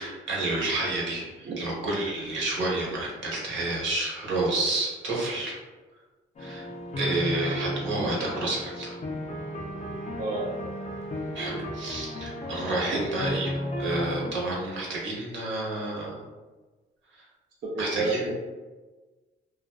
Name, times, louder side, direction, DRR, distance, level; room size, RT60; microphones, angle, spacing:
voice 1, 0.0-5.6 6.4-6.7 7.0-9.0 11.3-16.2 17.1-17.3 17.8-18.2, right 2 dB, 70° right, -4 dB, 0.9 m, -30 dB
sound 1, 6.4-14.3, equal, 35° left, 0.5 m, -34 dB
voice 2, 17.6-18.4, right 3 dB, 45° right, -5 dB, 0.5 m, -29 dB
2.4 x 2.1 x 2.3 m, 1.3 s
cardioid pair, 90°, 20 cm